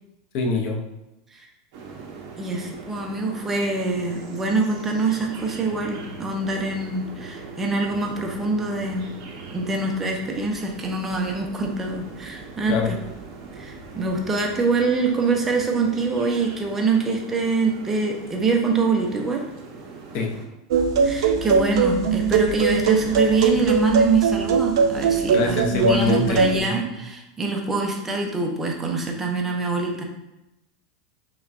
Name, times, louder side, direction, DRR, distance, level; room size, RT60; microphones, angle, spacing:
voice 1, 0.3-0.8 12.7-12.9 20.1-20.4 25.3-27.0, left 4 dB, 45° left, 1 dB, 0.6 m, -24 dB
sound 1, 1.7-20.4, right 4 dB, 55° right, 0.7 m, -40 dB
voice 2, 2.4-9.1 9.5-12.9 13.5-19.4 21.0-30.0, right 3 dB, 10° right, 1 dB, 0.5 m, -24 dB
sound 2, 20.7-26.6, right 5 dB, 85° right, 0.4 m, -21 dB
5.8 x 2.2 x 2.5 m, 0.93 s
supercardioid pair, 165°, 2 cm